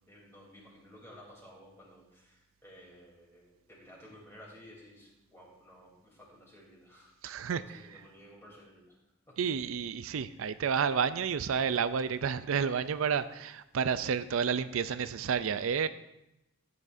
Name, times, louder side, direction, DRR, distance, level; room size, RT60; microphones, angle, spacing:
voice 1, 0.0-9.0 9.3-9.4 12.4-12.7, equal, 10° left, -4 dB, 3.2 m, -55 dB
voice 2, 7.2-7.6 9.4-15.9, right 6 dB, 80° right, 13 dB, 0.4 m, -30 dB
14.5 x 9.7 x 2.6 m, 0.91 s
head